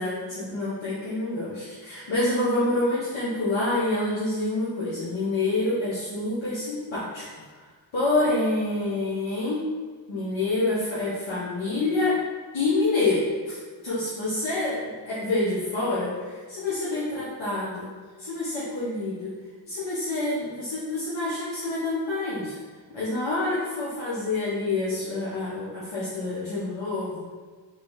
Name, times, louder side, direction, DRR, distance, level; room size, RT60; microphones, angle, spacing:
voice 1, 0.0-7.2 7.5-9.6 10.1-12.2 12.5-13.6 13.8-17.9 18.2-19.3 19.6-22.6 22.9-27.3, left 2 dB, 80° left, -10 dB, 1.2 m, -27 dB
3.3 x 3.2 x 4.6 m, 1.5 s
cardioid pair, 45°, 45 cm